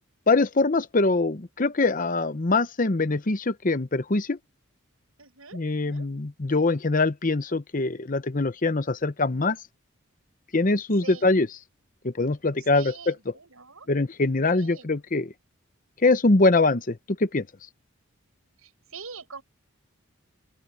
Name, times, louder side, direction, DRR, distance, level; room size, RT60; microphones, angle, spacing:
voice 1, 0.3-4.4 5.5-9.6 10.5-11.5 12.0-13.3 13.9-15.3 16.0-17.5, left 3 dB, 40° left, 0.8 m, -23 dB
voice 2, 5.2-6.1 11.0-11.3 12.7-13.9 14.6-14.9 18.6-19.4, right 5 dB, 80° right, 6.3 m, -44 dB
open air
head